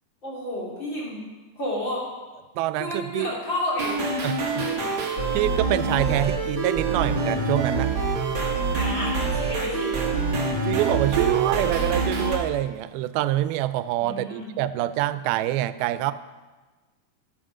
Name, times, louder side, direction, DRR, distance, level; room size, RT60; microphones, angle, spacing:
voice 1, 0.2-1.2 1.6-2.0 2.8-4.0 4.4-4.9 8.7-10.1 14.0-14.5, left 1 dB, 35° left, -4 dB, 2.9 m, -31 dB
voice 2, 2.6-3.3 4.2-4.7 5.3-7.9 10.6-16.1, right 14 dB, 90° right, 14 dB, 2.4 m, -25 dB
sound 1, 3.8-12.4, right 3 dB, 40° right, 2.0 m, -26 dB
14.0 x 7.9 x 6.3 m, 1.3 s
omnidirectional pair, 4.3 m